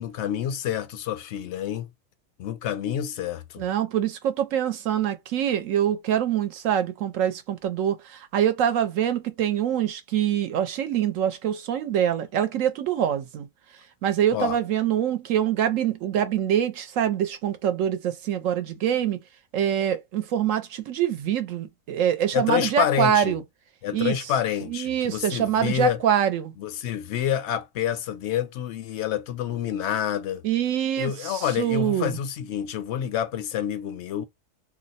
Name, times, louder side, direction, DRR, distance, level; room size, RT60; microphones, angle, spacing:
voice 1, 0.0-1.9 2.4-3.6 14.3-14.6 22.3-23.4 23.8-26.0 26.6-30.4 31.0-34.3, left 10 dB, 65° left, 0.7 m, -28 dB
voice 2, 3.6-13.5 14.0-19.2 19.5-23.4 23.9-24.1 24.7-26.5 30.4-32.2, right 10 dB, 70° right, 0.9 m, -25 dB
2.5 x 2.1 x 3.9 m
omnidirectional pair, 1.5 m